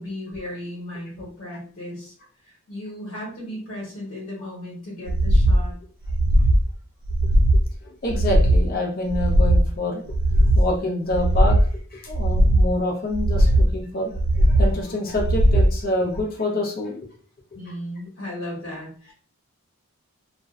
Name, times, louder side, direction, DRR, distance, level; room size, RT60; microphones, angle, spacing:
voice 1, 0.0-2.1 2.4-5.7 17.5-19.1, left 1 dB, 55° left, -5 dB, 1.2 m, -35 dB
sound 1, 5.1-5.6 6.0-6.6 7.1-7.6 8.1-8.7 9.1-9.7 10.1-10.7 11.1-11.7 12.1-12.7 13.1-13.7 14.1-14.7 15.1-15.7 16.1-16.2, equal, 55° right, 0.3 m, -18 dB
voice 2, 7.8-10.0 10.4-11.6 11.9-17.0, left 1 dB, 40° left, 0 dB, 0.6 m, -27 dB
2.5 x 2.0 x 2.4 m, 0.43 s
head